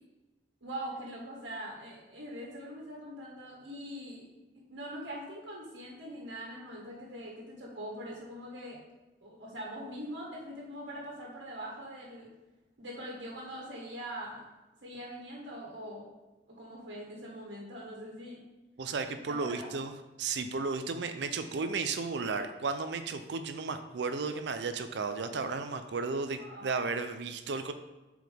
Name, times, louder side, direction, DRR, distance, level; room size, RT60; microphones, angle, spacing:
voice 1, 0.6-4.2 4.5-8.8 9.2-12.3 12.8-14.4 14.8-16.0 16.5-18.4 19.3-19.7 26.4-26.9, equal, 85° right, -4 dB, 1.7 m, -42 dB
voice 2, 18.8-27.7, right 4 dB, 70° right, 8 dB, 0.5 m, -34 dB
7.6 x 4.7 x 3.5 m, 1.1 s
head